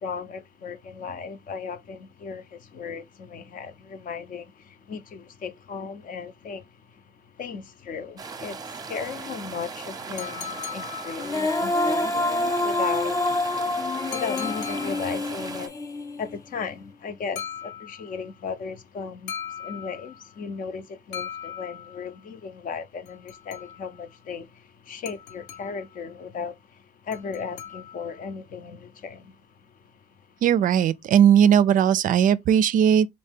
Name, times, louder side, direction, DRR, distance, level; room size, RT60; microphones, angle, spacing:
voice 1, 0.0-7.0 7.4-13.2 14.1-15.7 16.2-29.3, left 5 dB, 55° left, 0.7 m, -36 dB
sound 1, 8.2-15.7, right 4 dB, 20° right, 0.7 m, -38 dB
sound 2, 10.2-11.7 14.1-15.3 17.3-18.2 19.3-20.3 21.1-22.1 23.0-24.0 25.0-26.0 27.1-28.2, left 8 dB, 75° left, 1.0 m, -39 dB
Female singing, 11.2-16.4, left 2 dB, 20° left, 0.5 m, -27 dB
voice 2, 30.4-33.1, right 9 dB, 50° right, 0.4 m, -18 dB
4.1 x 2.7 x 3.5 m
cardioid pair, 110°, 17 cm